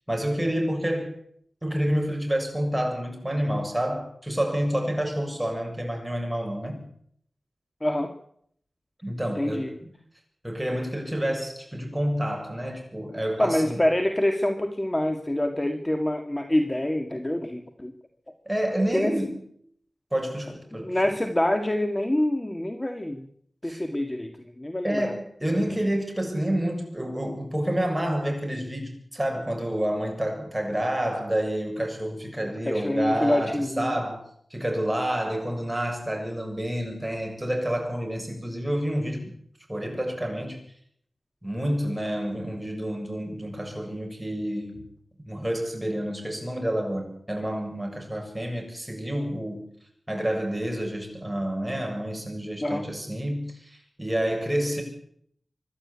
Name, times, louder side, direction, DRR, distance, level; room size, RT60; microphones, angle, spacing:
voice 1, 0.1-1.1 1.6-6.8 9.0-9.7 10.4-13.8 18.5-19.4 20.1-21.0 23.6-23.8 24.8-34.2 34.5-39.3 39.7-40.6 41.4-44.8 45.3-49.7 50.1-54.8, right 1 dB, 10° right, 3 dB, 7.3 m, -28 dB
voice 2, 7.8-8.1 9.4-9.7 13.4-17.9 18.9-19.1 20.8-23.3 23.6-25.1 32.4-34.0 52.6-52.9, left 1 dB, 20° left, 5 dB, 1.9 m, -26 dB
25.5 x 12.0 x 8.6 m, 0.67 s
wide cardioid pair, 65°, 0 cm